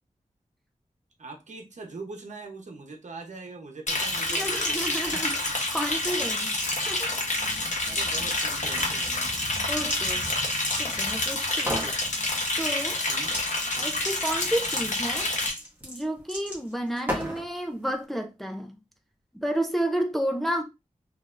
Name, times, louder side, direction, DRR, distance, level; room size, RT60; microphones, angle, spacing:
voice 1, 1.2-5.5 7.8-9.3 11.4-12.0 13.1-13.3, right 3 dB, 65° right, 1.0 m, -42 dB
Liquid, 3.9-15.5, left 2 dB, 65° left, 1.1 m, -28 dB
voice 2, 4.3-7.6 9.7-10.3 10.8-11.8 12.6-13.0 13.7-15.3 15.8-18.7 19.3-20.6, right 1 dB, ahead, 0.6 m, -31 dB
sound 1, 8.5-8.9 9.3-11.2 11.6-11.9 13.2-13.5 13.7-17.5, equal, 15° right, 1.4 m, -34 dB
3.4 x 3.2 x 2.5 m
wide cardioid pair, 95°, 13 cm